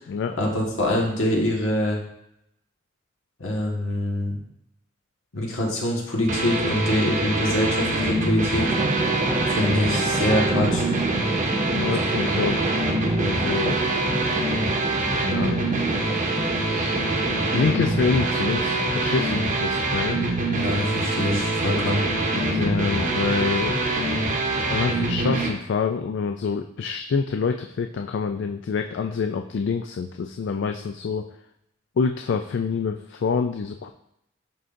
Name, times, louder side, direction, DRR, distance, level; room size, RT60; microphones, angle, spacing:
voice 1, 0.4-2.0 3.4-4.4 5.3-8.7 9.5-10.9 20.5-22.1, left 1 dB, 80° left, -2 dB, 1.6 m, -24 dB
sound 1, 6.3-25.5, right 2 dB, 40° right, 0.8 m, -24 dB
Drum, 8.7-19.7, right 3 dB, 20° right, 0.3 m, -30 dB
voice 2, 11.6-12.7 13.2-13.8 14.2-14.5 15.0-15.7 16.7-17.0 17.5-20.2 22.3-23.8 24.7-31.3 32.0-33.9, left 5 dB, 60° left, 6 dB, 0.3 m, -27 dB
11.0 x 3.8 x 2.6 m, 0.80 s
head